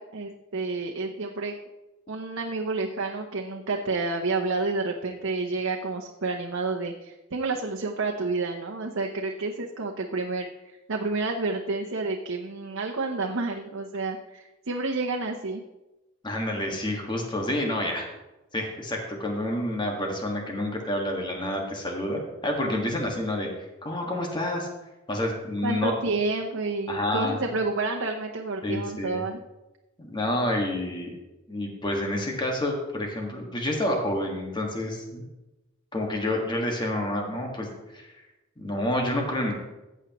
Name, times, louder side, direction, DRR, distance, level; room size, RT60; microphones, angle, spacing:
voice 1, 0.0-1.6 2.1-15.6 25.6-29.4, right 3 dB, 90° right, 2 dB, 0.8 m, -30 dB
voice 2, 16.2-18.1 18.5-23.5 23.8-24.7 25.1-25.9 26.9-27.4 28.6-29.2 30.0-31.2 31.5-35.3 35.9-37.7 37.9-38.1 38.6-39.5, left 1 dB, 25° left, 1 dB, 1.7 m, -28 dB
14.5 x 8.1 x 3.1 m, 1.0 s
head